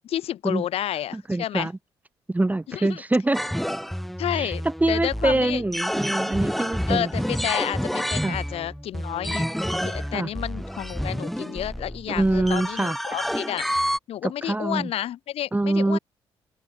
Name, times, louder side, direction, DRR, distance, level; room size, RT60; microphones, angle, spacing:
voice 1, 0.0-1.7 2.7-3.0 4.2-5.6 6.9-9.5 9.8-13.7 14.1-16.0, left 11 dB, 75° left, 2.5 m, -30 dB
voice 2, 1.1-1.7 2.3-3.4 4.3-4.5 4.8-7.1 8.2-8.4 10.1-10.3 12.1-13.0 14.2-14.9 15.5-16.0, right 2 dB, 15° right, 2.9 m, -24 dB
sound 1, 3.3-14.0, equal, ahead, 6.3 m, -29 dB
open air
supercardioid pair, 70°, 10 cm